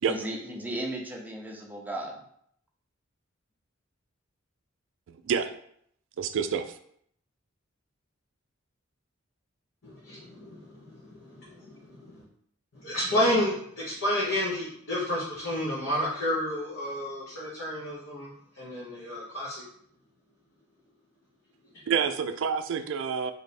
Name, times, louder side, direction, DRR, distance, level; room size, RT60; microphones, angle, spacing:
voice 1, 0.1-2.2, right 1 dB, 10° right, -1 dB, 0.6 m, -35 dB
voice 2, 5.1-5.5 6.2-6.8 21.8-23.3, right 6 dB, 65° right, 9 dB, 0.4 m, -28 dB
voice 3, 9.8-12.2 12.7-19.6, left 1 dB, 60° left, -7 dB, 1.0 m, -31 dB
3.3 x 2.7 x 4.1 m, 0.67 s
head